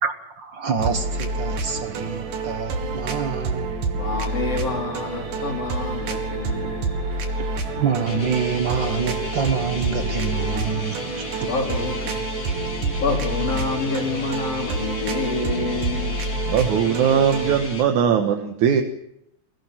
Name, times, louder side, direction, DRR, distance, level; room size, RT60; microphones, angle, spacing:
voice 1, 0.0-3.7 7.4-7.5 7.8-11.5, right 6 dB, 55° right, 1.3 m, -26 dB
sound 1, 0.8-17.7, right 3 dB, 90° right, 3.5 m, -28 dB
voice 2, 3.9-7.1 11.4-12.4 13.0-16.2, left 3 dB, 50° left, 4.0 m, -28 dB
sound 2, 4.2-10.6, left 1 dB, 90° left, 4.6 m, -40 dB
sound 3, 8.1-17.8, left 3 dB, 30° left, 2.1 m, -35 dB
voice 3, 16.5-18.8, right 7 dB, 70° right, 2.6 m, -20 dB
22.0 x 16.0 x 7.5 m
omnidirectional pair, 3.7 m